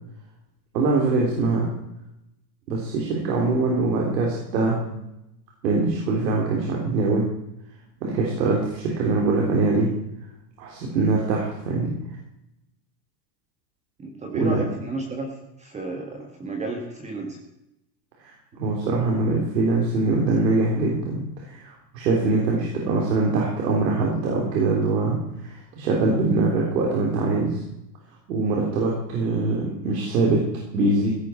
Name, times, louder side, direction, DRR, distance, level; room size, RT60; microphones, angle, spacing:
voice 1, 0.7-1.7 2.7-5.0 5.6-7.3 8.0-9.9 10.6-11.9 14.3-14.7 18.2-27.6 28.3-30.4 30.7-31.1, right 3 dB, 85° right, -2 dB, 3.6 m, -23 dB
voice 2, 14.0-15.3 15.6-17.4, right 2 dB, 15° right, 2 dB, 1.5 m, -32 dB
16.0 x 10.5 x 4.5 m, 0.85 s
supercardioid pair, 155°, 49 cm